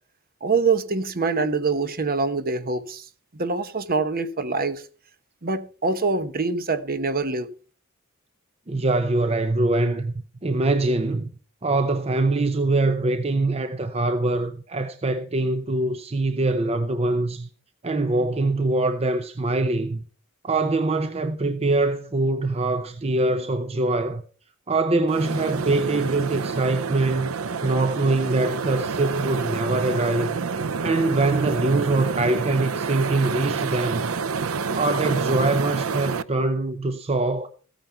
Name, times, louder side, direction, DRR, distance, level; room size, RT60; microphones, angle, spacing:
voice 1, 0.4-3.1 3.3-4.8 5.4-7.5, right 4 dB, 45° right, 1.0 m, -24 dB
voice 2, 8.7-10.1 10.4-11.3 11.6-17.5 17.8-20.0 20.4-24.2 24.7-27.3 27.6-30.4 30.8-34.1 34.7-37.5, right 2 dB, 30° right, 0.7 m, -23 dB
sound 1, 25.1-36.2, right 5 dB, 75° right, 0.6 m, -28 dB
15.0 x 9.2 x 4.4 m
head